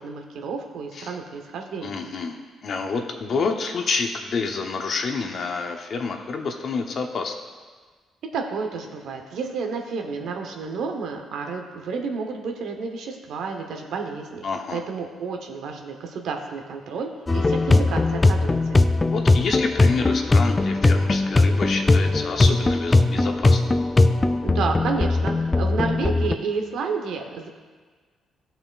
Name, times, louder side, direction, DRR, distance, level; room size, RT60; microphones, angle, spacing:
voice 1, 0.0-2.0 8.3-18.8 24.4-27.5, right 5 dB, 75° right, 3 dB, 1.0 m, -31 dB
voice 2, 1.8-2.4 2.6-7.4 14.4-14.8 19.1-23.6, left 4 dB, 55° left, 4 dB, 0.9 m, -28 dB
sound 1, 17.3-26.4, left 2 dB, 20° left, 0.3 m, -19 dB
14.5 x 5.7 x 2.4 m, 1.5 s
cardioid pair, 90°, 0 cm